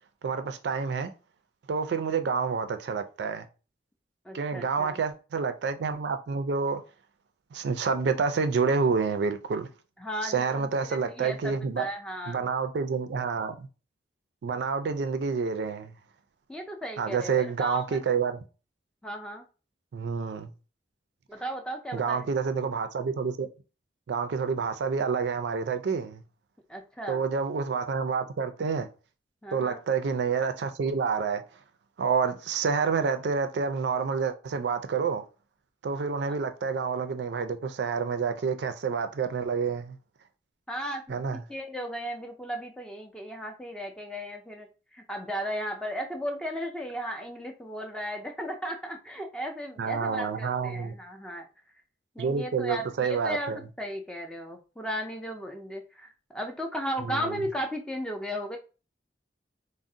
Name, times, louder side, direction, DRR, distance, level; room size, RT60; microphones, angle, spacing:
voice 1, 0.2-1.1 1.7-3.5 4.3-6.8 7.5-9.7 10.2-11.9 12.3-13.7 14.4-15.9 17.0-18.4 19.9-20.5 21.9-23.5 24.1-26.2 27.1-28.9 29.5-31.4 32.0-35.2 35.8-40.0 41.1-41.4 49.8-50.9 52.2-53.6 57.1-57.4, right 5 dB, 70° right, 0.3 m, -28 dB
voice 2, 4.2-5.0 10.0-12.4 16.5-18.0 19.0-19.4 21.3-22.3 26.7-27.2 29.4-29.8 40.7-44.7 44.9-51.5 52.1-58.6, equal, 5° left, 0.4 m, -35 dB
2.5 x 2.0 x 3.7 m
head